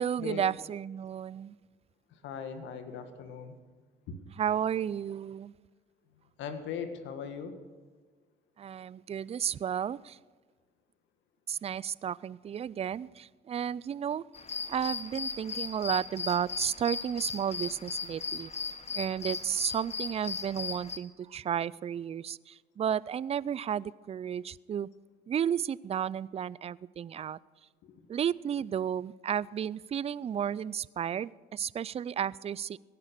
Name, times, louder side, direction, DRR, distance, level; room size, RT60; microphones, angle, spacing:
voice 1, 0.0-1.6 4.4-5.5 8.6-10.2 11.5-14.2 14.7-18.5 18.9-24.9 25.3-27.4 28.1-32.8, right 9 dB, 30° right, 22 dB, 0.4 m, -33 dB
voice 2, 2.1-3.6 4.1-4.2 6.4-7.6 27.8-28.0, left 6 dB, 70° left, 8 dB, 1.7 m, -39 dB
sound 1, 14.3-21.0, left 5 dB, 35° left, 1.3 m, -37 dB
16.5 x 10.5 x 6.7 m, 1.5 s
hypercardioid pair, 60°, 20 cm